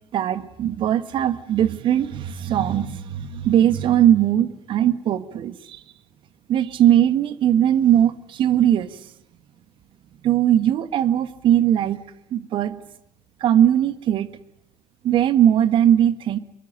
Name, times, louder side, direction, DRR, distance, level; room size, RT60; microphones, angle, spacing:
voice 1, 0.1-5.8 6.5-8.9 10.2-12.0 12.3-12.8 13.4-14.3 15.0-16.4, right 10 dB, 55° right, 14 dB, 1.5 m, -19 dB
24.5 x 22.5 x 9.1 m, 0.81 s
hypercardioid pair, 55°, 10 cm